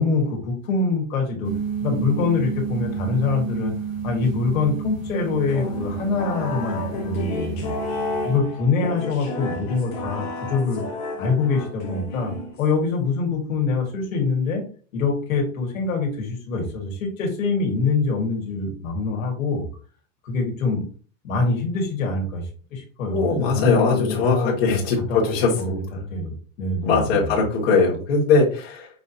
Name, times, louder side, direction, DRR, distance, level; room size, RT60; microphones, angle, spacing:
voice 1, 0.0-1.5 1.8-3.7 4.0-7.7 8.2-10.8 11.2-14.6 14.9-19.7 20.2-20.8 21.2-24.8 25.1-25.8 26.1-27.3, left 4 dB, 90° left, 1 dB, 1.7 m, -24 dB
sound 1, 1.4-8.4, right 7 dB, 85° right, 2.2 m, -31 dB
sound 2, 5.5-12.9, left 3 dB, 30° left, 1.0 m, -32 dB
voice 2, 23.1-26.0 26.8-28.9, left 4 dB, 50° left, -3 dB, 1.6 m, -21 dB
5.5 x 2.8 x 2.7 m, 0.40 s
supercardioid pair, 175°, 39 cm